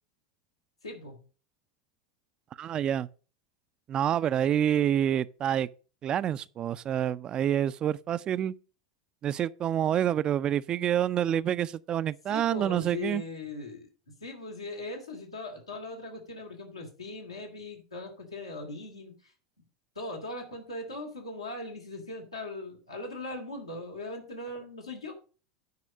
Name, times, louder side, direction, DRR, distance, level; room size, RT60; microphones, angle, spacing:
voice 1, 0.8-1.2 12.3-13.9 14.2-19.3 19.9-25.1, left 2 dB, 85° left, 2.7 m, -39 dB
voice 2, 2.6-3.1 3.9-5.7 6.0-8.5 9.2-13.2, right 10 dB, 30° right, 0.4 m, -27 dB
9.5 x 4.9 x 6.4 m
figure-of-eight pair, 85°, 3 cm